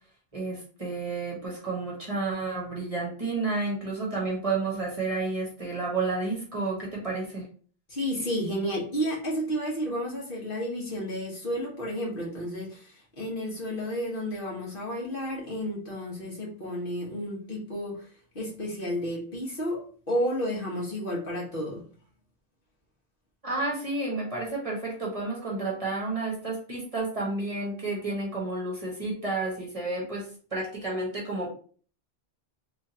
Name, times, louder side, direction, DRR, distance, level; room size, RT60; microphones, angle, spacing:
voice 1, 0.3-7.4 23.4-31.5, right 3 dB, 35° right, -3 dB, 1.2 m, -31 dB
voice 2, 7.9-18.1 18.3-21.8, equal, 60° left, -4 dB, 1.5 m, -32 dB
3.6 x 3.2 x 2.8 m, 0.42 s
omnidirectional pair, 1.1 m